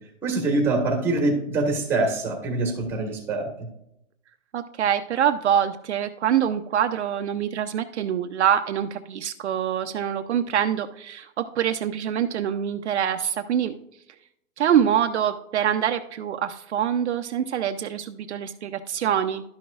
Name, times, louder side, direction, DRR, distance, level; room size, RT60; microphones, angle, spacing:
voice 1, 0.2-3.7, right 2 dB, 5° right, 1 dB, 1.4 m, -24 dB
voice 2, 4.5-13.7 14.6-19.4, right 9 dB, 60° right, 7 dB, 0.7 m, -25 dB
12.0 x 6.1 x 2.4 m, 0.79 s
hypercardioid pair, 165°, 39 cm